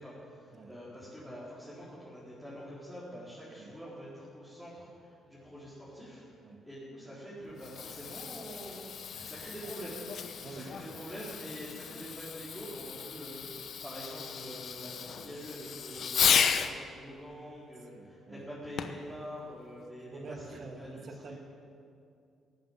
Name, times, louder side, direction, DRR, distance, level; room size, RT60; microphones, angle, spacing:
voice 1, 0.0-6.2 6.6-10.0 10.5-21.4, equal, 5° left, -10 dB, 4.2 m, -45 dB
Fireworks, 7.4-16.8 18.8-19.1 19.8-19.9, left 7 dB, 60° left, 0.9 m, -34 dB
voice 2, 17.9-18.5 20.1-21.4, right 4 dB, 50° right, 4 dB, 1.8 m, -47 dB
17.0 x 9.2 x 7.4 m, 2.5 s
cardioid pair, 90°, 0 cm